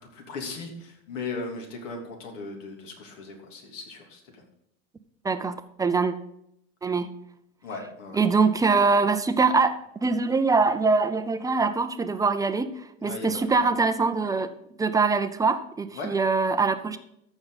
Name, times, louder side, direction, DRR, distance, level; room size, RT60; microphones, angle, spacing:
voice 1, 0.0-4.4 7.6-8.2 13.0-13.6 15.9-16.1, left 3 dB, 85° left, 2 dB, 3.2 m, -37 dB
voice 2, 5.2-6.1 6.8-7.1 8.1-14.5 14.8-17.0, right 4 dB, 10° right, 9 dB, 0.4 m, -23 dB
14.0 x 6.1 x 4.0 m, 0.76 s
supercardioid pair, 135°, 37 cm